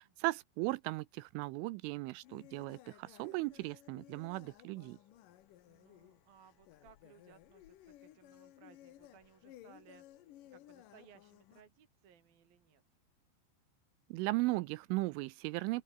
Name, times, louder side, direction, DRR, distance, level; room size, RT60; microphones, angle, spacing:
voice 1, 0.0-5.0 14.1-15.8, right 21 dB, 85° right, 3.1 m, -37 dB
sound 1, 2.2-11.6, left 13 dB, 90° left, 1.9 m, -58 dB
voice 2, 5.7-10.1 10.5-12.8, right 8 dB, 55° right, 4.3 m, -63 dB
open air
omnidirectional pair, 5.6 m